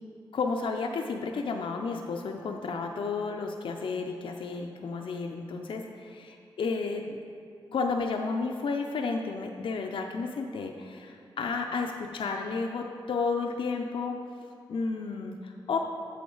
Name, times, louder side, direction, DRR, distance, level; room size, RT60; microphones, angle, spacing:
voice 1, 0.3-7.2 7.7-14.1 14.7-15.8, left 4 dB, 70° left, 3 dB, 0.5 m, -32 dB
8.5 x 6.6 x 3.9 m, 2.5 s
wide cardioid pair, 100°, 9 cm